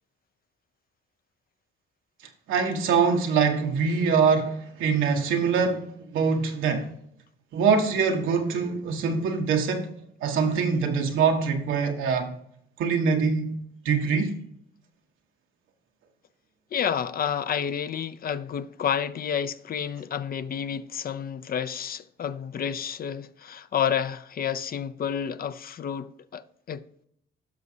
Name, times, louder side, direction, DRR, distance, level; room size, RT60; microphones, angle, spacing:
voice 1, 2.5-6.9 7.5-9.9 10.2-12.3 12.8-14.3, right 5 dB, 85° right, 1.4 m, -24 dB
voice 2, 16.7-26.8, left 8 dB, 50° left, 0.6 m, -30 dB
15.5 x 6.0 x 2.8 m
cardioid pair, 90°, 20 cm